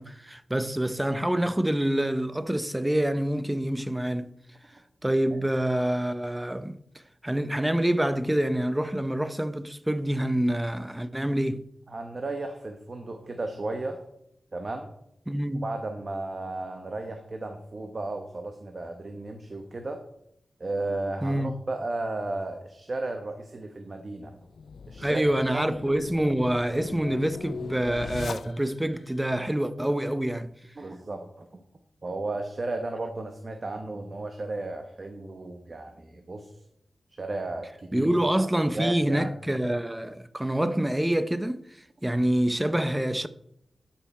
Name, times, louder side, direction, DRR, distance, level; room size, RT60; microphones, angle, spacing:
voice 1, 0.0-4.3 5.0-6.8 7.2-11.7 15.3-15.7 21.2-21.5 25.0-30.5 37.9-41.6 42.0-43.3, right 1 dB, 10° right, 0.6 m, -26 dB
voice 2, 11.9-14.0 14.5-14.9 15.6-20.0 20.6-24.4 24.9-25.7 30.8-31.6 32.0-36.6 37.2-38.1 38.6-39.3, right 2 dB, 50° right, 1.1 m, -34 dB
sound 1, 24.4-29.0, left 5 dB, 85° left, 0.3 m, -40 dB
13.0 x 5.8 x 4.3 m
cardioid pair, 60°, 0 cm